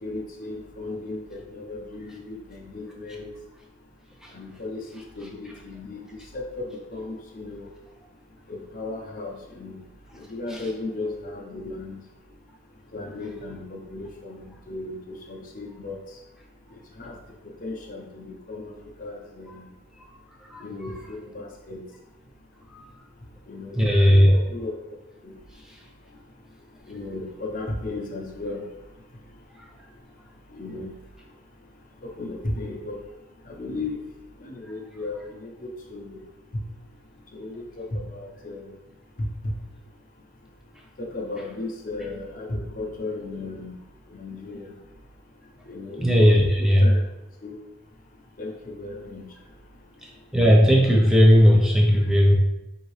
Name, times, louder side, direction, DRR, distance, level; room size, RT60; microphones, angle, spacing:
voice 1, 0.0-3.3 4.3-6.0 6.3-7.7 8.5-9.8 10.2-12.0 12.9-16.0 17.0-17.2 17.6-18.7 19.0-19.7 20.6-21.8 23.5-24.2 24.5-24.7 25.2-25.3 26.9-28.6 30.6-30.9 32.0-33.0 33.5-34.0 34.4-36.2 37.3-38.6 39.4-39.5 41.0-43.7 44.1-44.6 45.7-47.0 47.4-47.6 48.4-48.5 48.8-49.2, left 2 dB, 40° left, 0 dB, 0.7 m, -35 dB
voice 2, 23.8-24.4 46.0-46.8 50.3-52.3, equal, 5° right, -1 dB, 0.5 m, -16 dB
5.0 x 2.7 x 3.2 m, 0.95 s
head